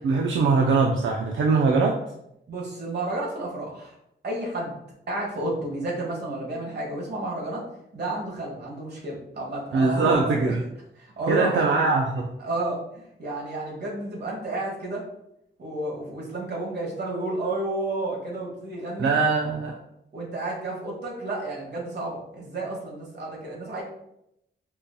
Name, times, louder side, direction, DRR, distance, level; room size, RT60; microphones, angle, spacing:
voice 1, 0.0-2.0 9.7-10.6 11.3-12.3 19.0-19.7, right 4 dB, 85° right, 0 dB, 0.4 m, -22 dB
voice 2, 2.5-3.9 4.2-4.7 5.1-7.6 7.9-10.5 11.0-11.8 12.4-15.0 15.6-19.1 20.1-23.8, right 2 dB, 60° right, -2 dB, 1.3 m, -31 dB
5.5 x 2.6 x 2.2 m, 0.80 s
wide cardioid pair, 115°, 20 cm